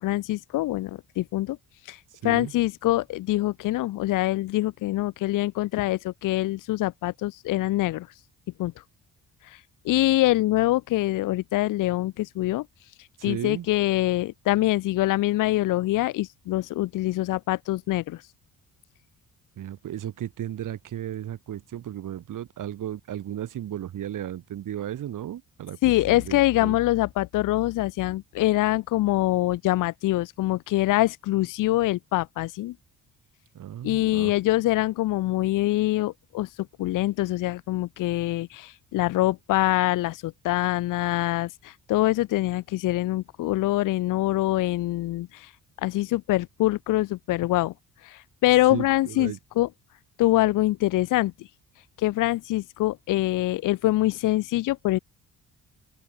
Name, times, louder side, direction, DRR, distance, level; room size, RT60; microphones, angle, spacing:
voice 1, 0.0-1.6 1.9-2.0 2.2-8.1 8.6-8.7 9.5-9.6 9.8-12.7 13.2-18.2 25.8-32.7 33.8-36.5 36.8-45.5 45.8-47.7 48.0-49.7 50.2-51.3 52.0-55.0, left 16 dB, 70° left, 0.6 m, -24 dB
voice 2, 2.1-2.5 13.2-13.7 19.6-25.8 26.1-26.8 33.5-34.3 48.7-49.4, right 11 dB, 65° right, 6.2 m, -35 dB
open air
cardioid pair, 130°, 33 cm